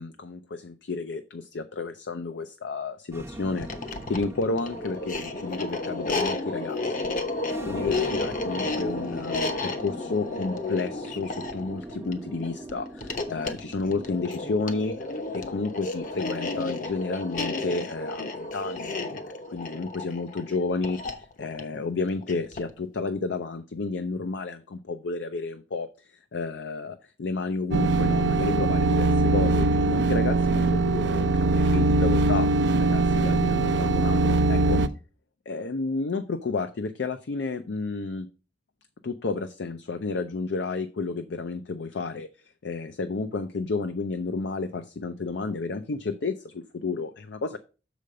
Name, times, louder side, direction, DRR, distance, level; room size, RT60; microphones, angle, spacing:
voice 1, 0.0-3.7 4.1-7.1 7.6-15.0 15.3-19.1 19.5-25.9 26.3-32.5 32.8-34.8 35.5-38.3 39.0-42.3 42.6-47.6, left 3 dB, 70° left, 9 dB, 0.5 m, -31 dB
sound 1, 3.1-17.1, right 2 dB, 15° right, 0.6 m, -42 dB
sound 2, 3.5-22.8, left 3 dB, 45° left, 0.9 m, -32 dB
sound 3, 27.7-34.9, right 3 dB, 70° right, 0.6 m, -22 dB
6.6 x 5.1 x 5.1 m, 0.34 s
head